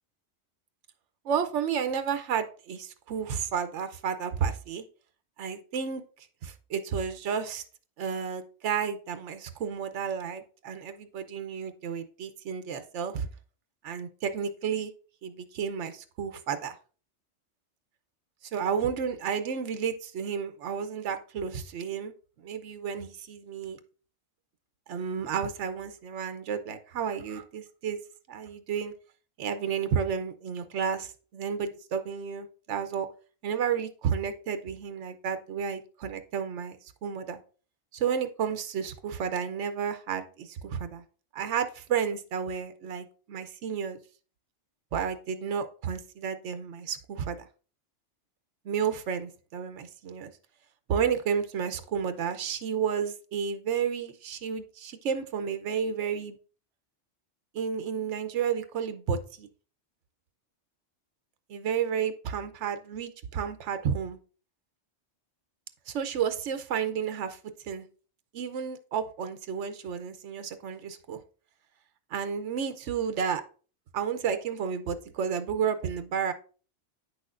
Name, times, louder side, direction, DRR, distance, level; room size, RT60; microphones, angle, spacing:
voice 1, 1.2-4.8 5.4-7.6 8.0-13.3 13.8-14.9 15.2-16.7 18.5-22.1 22.4-23.8 24.9-28.0 28.3-28.9 29.4-33.1 33.4-36.8 37.0-37.4 37.9-41.0 41.3-44.0 44.9-47.5 48.6-50.3 50.9-56.4 57.5-59.5 61.5-64.2 65.9-67.4 67.6-67.9 68.3-71.2 72.1-73.4 73.9-76.3, right 7 dB, 80° right, 10 dB, 1.0 m, -31 dB
9.1 x 6.2 x 2.5 m, 0.38 s
omnidirectional pair, 1.2 m